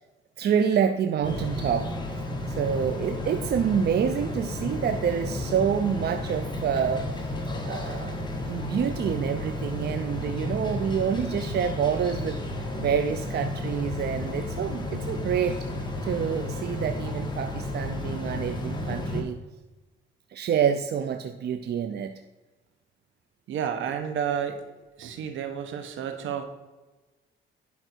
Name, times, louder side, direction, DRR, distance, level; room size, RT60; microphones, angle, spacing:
voice 1, 0.4-2.2 2.5-7.1 7.6-8.2 8.5-15.6 16.0-19.4 20.3-22.2, right 8 dB, 55° right, 8 dB, 0.6 m, -27 dB
sound 1, 1.2-19.2, left 1 dB, 20° left, 1.9 m, -32 dB
voice 2, 23.5-24.6 25.0-26.4, right 8 dB, 75° right, 7 dB, 1.3 m, -30 dB
11.0 x 5.3 x 4.6 m, 1.2 s
cardioid pair, 90°, 20 cm